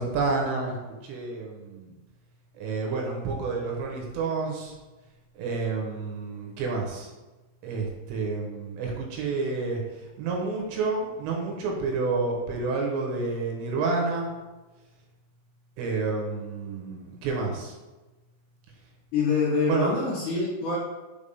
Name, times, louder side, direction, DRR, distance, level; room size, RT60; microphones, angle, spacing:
voice 1, 0.0-1.9 2.6-4.7 5.4-7.1 7.6-9.8 10.2-14.3 15.8-17.7 19.7-19.9, right 4 dB, 80° right, 0 dB, 3.3 m, -29 dB
voice 2, 19.1-20.8, left 4 dB, 60° left, -7 dB, 2.6 m, -25 dB
7.0 x 4.7 x 3.5 m, 1.2 s
omnidirectional pair, 5.2 m